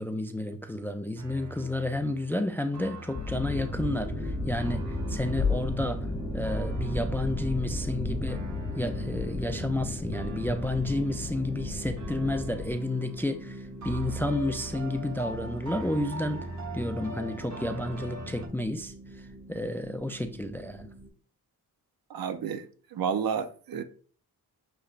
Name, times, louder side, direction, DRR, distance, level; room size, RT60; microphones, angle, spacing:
voice 1, 0.0-6.1 6.3-8.4 8.8-16.5 16.7-18.9 19.5-20.9, left 1 dB, 5° left, 0.3 m, -31 dB
sound 1, 1.2-11.6 12.0-13.4 13.8-18.5, right 2 dB, 50° right, 1.0 m, -42 dB
sound 2, 3.1-12.7, left 3 dB, 25° left, 0.7 m, -34 dB
sound 3, 3.5-21.1, right 1 dB, 25° right, 1.9 m, -40 dB
voice 2, 22.1-22.6 22.9-23.8, right 7 dB, 70° right, 0.6 m, -30 dB
6.5 x 3.0 x 2.4 m
cardioid pair, 90°, 37 cm